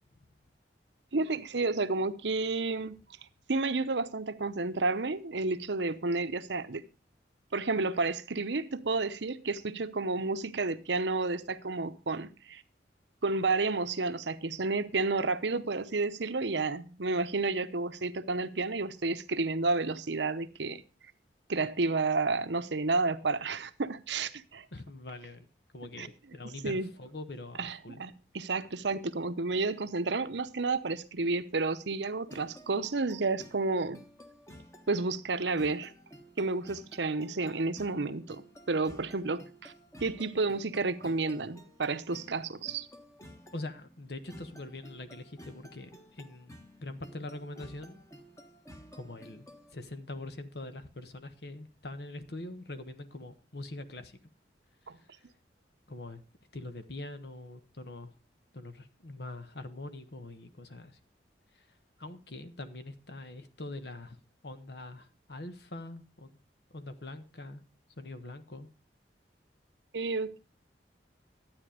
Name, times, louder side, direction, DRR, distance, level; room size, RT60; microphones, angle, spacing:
voice 1, 1.1-3.0 3.5-6.8 7.5-12.6 13.2-20.8 21.5-24.7 26.0-26.1 26.6-26.9 27.6-34.0 34.9-35.9 36.4-39.7 40.0-42.9 54.9-55.0 69.9-70.4, right 3 dB, 80° right, 0.9 m, -31 dB
voice 2, 24.7-25.5 25.7-28.0 43.5-48.0 48.9-49.5 49.7-54.2 54.8-55.2 55.9-56.2 56.5-58.1 58.5-61.0 61.5-61.7 62.0-64.2 64.4-66.4 66.7-67.6 68.0-68.7, left 2 dB, 65° left, 1.2 m, -43 dB
sound 1, 32.3-49.7, equal, 15° left, 1.3 m, -53 dB
12.0 x 8.9 x 5.0 m
head